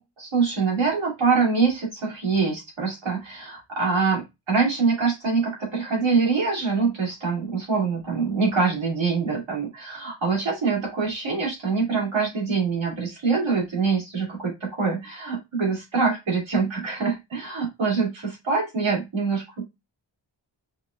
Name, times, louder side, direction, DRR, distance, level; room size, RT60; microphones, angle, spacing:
voice 1, 0.0-19.7, right 4 dB, 80° right, -3 dB, 2.2 m, -24 dB
5.3 x 2.3 x 2.4 m, 0.21 s
wide cardioid pair, 80°, 46 cm